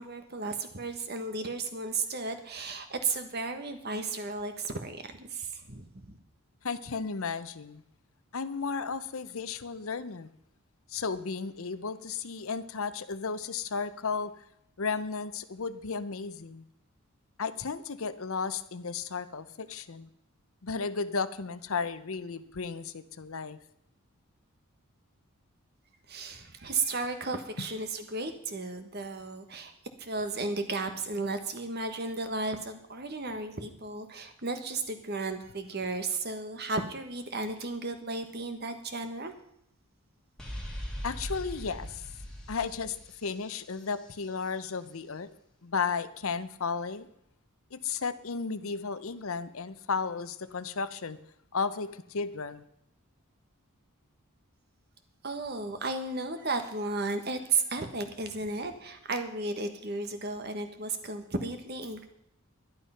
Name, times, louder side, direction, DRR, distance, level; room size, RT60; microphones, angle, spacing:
voice 1, 0.0-6.2 26.1-29.7 30.0-39.3 55.2-62.1, right 3 dB, 45° right, 8 dB, 1.4 m, -34 dB
voice 2, 6.6-7.8 8.3-10.3 10.9-14.4 14.8-16.6 17.4-20.1 20.6-23.6 41.0-42.0 42.5-45.3 45.6-47.1 47.7-51.2 51.5-52.6, left 5 dB, 70° left, 14 dB, 0.7 m, -34 dB
sound 1, 40.4-44.1, equal, 5° left, 2.0 m, -40 dB
11.5 x 11.5 x 5.7 m, 0.73 s
head